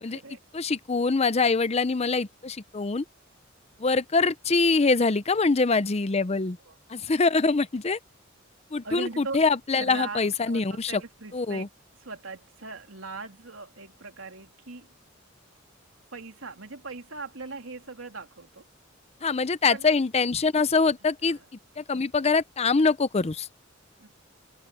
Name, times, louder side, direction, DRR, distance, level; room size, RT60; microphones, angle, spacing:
voice 1, 0.0-0.4 6.3-6.8 8.8-9.4 9.8-11.7 12.0-14.9 16.1-18.7 19.7-19.9 21.2-21.5 24.0-24.1, right 3 dB, 90° right, 3.1 m, -40 dB
voice 2, 0.5-3.0 3.8-6.6 6.9-8.0 8.7-11.0 11.3-11.7 19.2-21.4 21.8-23.5, left 4 dB, 30° left, 0.6 m, -24 dB
head